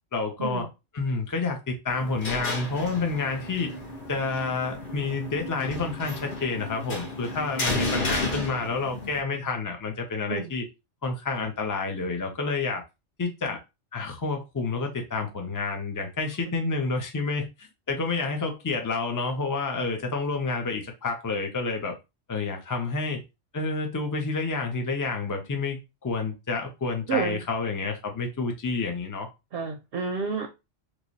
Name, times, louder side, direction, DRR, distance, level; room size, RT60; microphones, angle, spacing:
voice 1, 0.1-0.7 0.9-3.7 4.1-10.6 11.0-12.8 13.2-13.6 13.9-21.9 22.3-23.2 23.5-29.3, left 4 dB, 20° left, 0.6 m, -29 dB
sound 1, 1.9-9.2, left 2 dB, 45° left, 1.1 m, -33 dB
voice 2, 27.1-27.4 29.5-30.5, right 5 dB, 65° right, 0.8 m, -29 dB
3.1 x 2.3 x 3.9 m
omnidirectional pair, 1.2 m